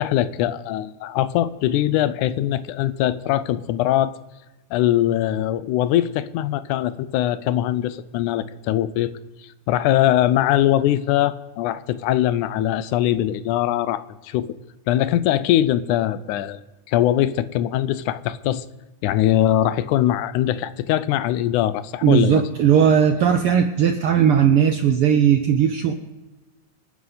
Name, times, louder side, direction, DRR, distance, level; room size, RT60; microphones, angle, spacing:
voice 1, 0.0-4.2 4.7-9.1 9.4-14.5 14.9-16.6 16.9-18.7 19.0-22.4, left 12 dB, 85° left, 16 dB, 2.1 m, -21 dB
voice 2, 22.0-25.9, right 8 dB, 75° right, 7 dB, 1.2 m, -17 dB
26.5 x 9.7 x 4.0 m, 1.1 s
omnidirectional pair, 3.5 m